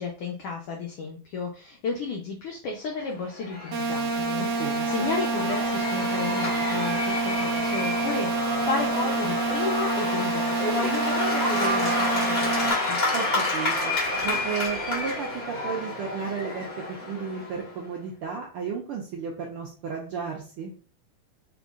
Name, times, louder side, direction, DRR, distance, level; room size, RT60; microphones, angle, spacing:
voice 1, 0.0-13.0, left 4 dB, 80° left, 0 dB, 1.3 m, -32 dB
Cheering / Applause / Crowd, 3.1-17.8, left 2 dB, 40° left, 1.4 m, -29 dB
sound 1, 3.7-12.7, right 3 dB, 70° right, 1.3 m, -28 dB
voice 2, 4.4-5.1 13.1-13.9 14.2-20.7, right 6 dB, 85° right, -1 dB, 1.2 m, -33 dB
4.3 x 3.8 x 2.3 m, 0.38 s
omnidirectional pair, 3.3 m